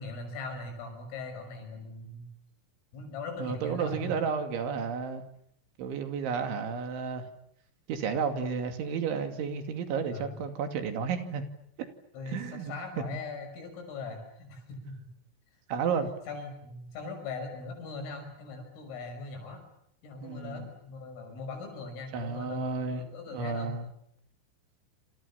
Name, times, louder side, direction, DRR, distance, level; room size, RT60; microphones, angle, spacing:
voice 1, 0.0-2.3 2.9-4.1 10.1-10.4 12.1-15.1 16.3-19.6 20.0-23.7, left 3 dB, 85° left, 4 dB, 8.5 m, -40 dB
voice 2, 3.4-5.2 5.8-7.3 7.9-11.4 12.3-12.7 13.1-13.2 15.7-16.1 20.2-20.7 22.1-23.9, right 5 dB, 70° right, 7 dB, 4.9 m, -32 dB
28.0 x 27.5 x 7.2 m, 0.73 s
omnidirectional pair, 5.7 m